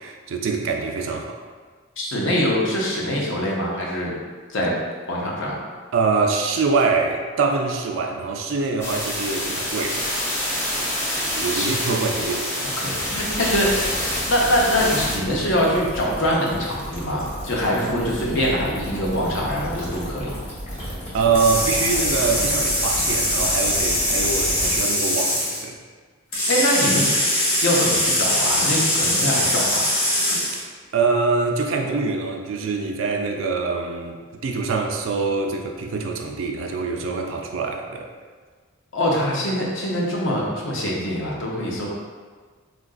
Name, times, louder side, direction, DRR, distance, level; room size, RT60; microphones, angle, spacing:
voice 1, 0.0-1.4 5.9-10.1 10.8-10.9 11.2-12.7 20.7-25.8 30.5-30.6 30.9-38.1, right 4 dB, 65° right, 2 dB, 0.3 m, -24 dB
voice 2, 2.0-4.1 4.5-4.7 5.1-5.6 11.5-11.7 12.8-13.9 14.3-20.4 26.5-27.0 27.6-29.9 38.9-41.9, equal, 60° left, -3 dB, 0.6 m, -23 dB
sound 1, 8.8-15.2, equal, 10° left, 0.4 m, -26 dB
sound 2, 13.0-24.8, equal, 35° left, 1.0 m, -33 dB
sound 3, 21.3-25.6 26.3-30.6, left 1 dB, 85° left, 1.4 m, -22 dB
3.7 x 2.4 x 2.3 m, 1.5 s
head